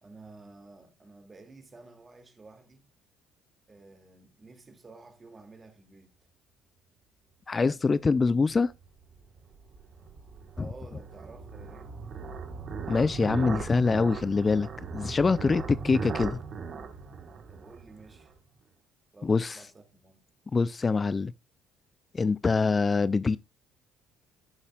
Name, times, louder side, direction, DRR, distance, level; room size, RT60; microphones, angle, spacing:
voice 1, 0.0-2.9 3.7-6.1 10.5-11.9 17.5-18.3 19.1-20.2, right 3 dB, 30° right, 2.4 m, -51 dB
voice 2, 7.5-8.7 12.9-14.7 14.9-16.4 19.2-19.6 20.5-21.3 22.1-23.4, left 4 dB, 30° left, 0.3 m, -24 dB
sound 1, 8.7-18.3, right 5 dB, 50° right, 1.4 m, -39 dB
14.5 x 6.4 x 2.4 m
supercardioid pair, 65°, 0 cm